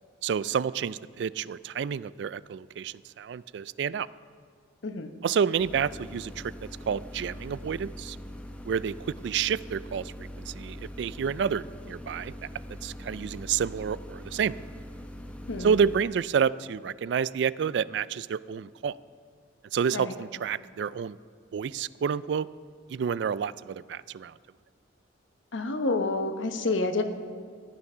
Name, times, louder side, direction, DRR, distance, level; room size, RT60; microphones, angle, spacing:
voice 1, 0.2-4.1 5.2-6.5 6.9-8.2 8.7-12.3 12.8-14.6 15.6-19.0 19.7-21.2 21.5-22.5 22.9-24.3, right 7 dB, 65° right, 19 dB, 0.3 m, -29 dB
sound 1, 5.6-16.0, equal, 5° left, 0.8 m, -42 dB
voice 2, 25.5-27.0, left 3 dB, 85° left, 7 dB, 1.0 m, -28 dB
14.5 x 9.9 x 5.6 m, 2.1 s
head